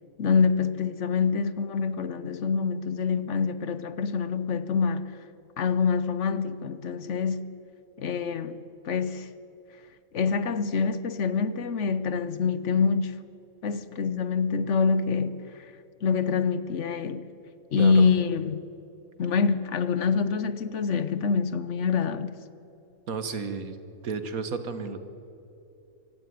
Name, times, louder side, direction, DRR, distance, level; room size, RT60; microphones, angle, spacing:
voice 1, 0.2-5.1 5.6-7.5 8.0-8.6 8.8-9.3 10.1-13.2 13.6-15.6 16.0-17.3 17.7-18.6 19.2-22.4, left 5 dB, 60° left, 1.1 m, -26 dB
voice 2, 17.8-18.1 23.1-23.8 24.0-25.1, right 5 dB, 80° right, 1.8 m, -32 dB
25.0 x 12.5 x 9.4 m
omnidirectional pair, 1.5 m